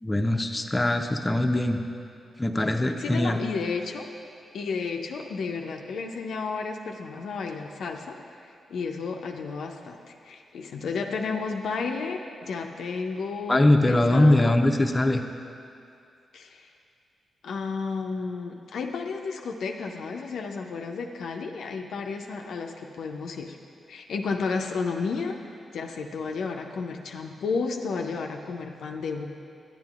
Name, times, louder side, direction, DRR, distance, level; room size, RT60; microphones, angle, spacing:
voice 1, 0.0-1.8 2.4-3.4 13.5-15.2, left 1 dB, 25° left, 5 dB, 0.5 m, -22 dB
voice 2, 3.0-4.1 4.5-8.2 8.4-14.5 16.3-16.7 17.4-23.6 23.9-25.4 25.7-29.3, left 4 dB, 75° left, 3 dB, 0.4 m, -32 dB
10.0 x 8.8 x 2.4 m, 2.4 s
supercardioid pair, 45°, 0 cm